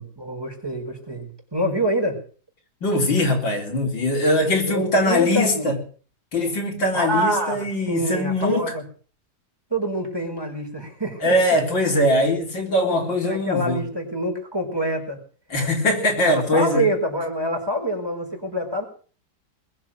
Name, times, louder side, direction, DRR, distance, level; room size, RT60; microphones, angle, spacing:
voice 1, 0.0-2.2 4.6-5.7 6.9-8.8 9.7-11.4 12.9-15.2 16.3-18.8, right 1 dB, 10° right, 4.8 m, -26 dB
voice 2, 2.8-5.8 6.3-8.7 11.2-13.8 15.5-16.9, left 1 dB, 90° left, 4.7 m, -21 dB
21.0 x 7.6 x 9.1 m
omnidirectional pair, 2.0 m